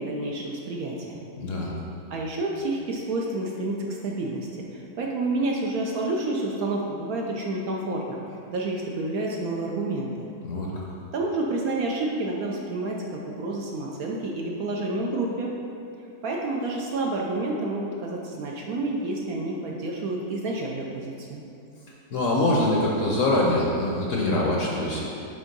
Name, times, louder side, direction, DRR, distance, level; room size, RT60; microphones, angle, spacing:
voice 1, 0.0-1.2 2.1-10.3 11.1-15.5 16.2-21.4, right 2 dB, 70° right, -1 dB, 0.9 m, -29 dB
voice 2, 1.4-1.7 10.4-10.8 22.1-25.0, left 1 dB, 60° left, -3 dB, 0.9 m, -24 dB
7.3 x 3.4 x 5.3 m, 2.7 s
omnidirectional pair, 1.9 m